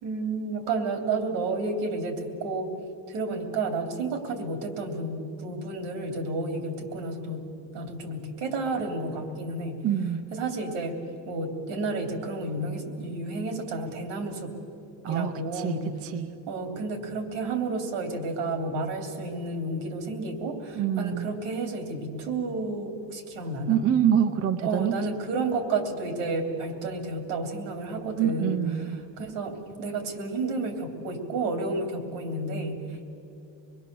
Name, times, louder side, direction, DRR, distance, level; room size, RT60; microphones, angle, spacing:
voice 1, 0.0-2.7 3.1-9.8 10.3-11.0 11.2-14.6 15.1-15.9 16.5-23.8 24.6-28.6 29.2-33.1, right 3 dB, 85° right, 5 dB, 3.2 m, -31 dB
voice 2, 9.8-10.3 15.0-16.4 20.8-21.3 23.7-25.0 28.2-29.0, right 9 dB, 35° right, 8 dB, 0.7 m, -26 dB
25.5 x 21.0 x 6.9 m, 2.7 s
cardioid pair, 160°, 44 cm